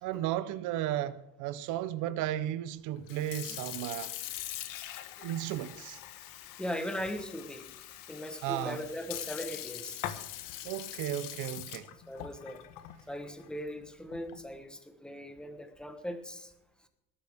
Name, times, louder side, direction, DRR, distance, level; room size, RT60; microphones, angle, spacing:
voice 1, 0.0-4.1 5.2-6.0 8.4-8.8 10.6-11.9, right 13 dB, 65° right, 0.9 m, -34 dB
Sink (filling or washing) / Fill (with liquid), 3.0-14.5, left 13 dB, 70° left, 1.4 m, -43 dB
voice 2, 6.6-7.6 8.1-10.0 12.1-12.6 13.1-16.5, left 1 dB, 5° left, 1.2 m, -39 dB
19.5 x 12.5 x 3.6 m
cardioid pair, 175°, 34 cm